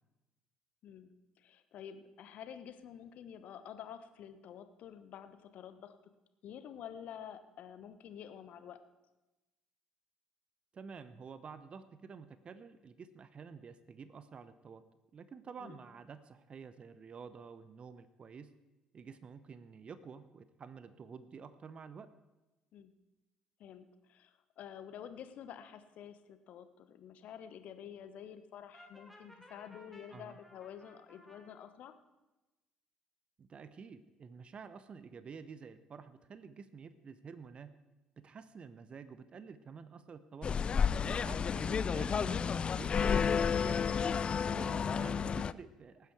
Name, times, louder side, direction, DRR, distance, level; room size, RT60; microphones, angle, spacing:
voice 1, 0.8-5.9 6.4-8.8 15.6-15.8 22.7-22.9 23.6-31.9, left 9 dB, 55° left, 11 dB, 1.1 m, -49 dB
voice 2, 10.7-14.8 15.1-18.5 18.9-22.1 30.1-30.4 33.4-37.7 38.2-40.5 41.2-44.2 44.5-46.1, right 5 dB, 40° right, 13 dB, 0.8 m, -50 dB
Brass instrument, 28.7-31.5, equal, ahead, 3.1 m, -58 dB
sound 1, 40.4-45.5, left 6 dB, 35° left, 0.4 m, -31 dB
18.5 x 9.8 x 4.7 m, 1.0 s
figure-of-eight pair, 50°, 3 cm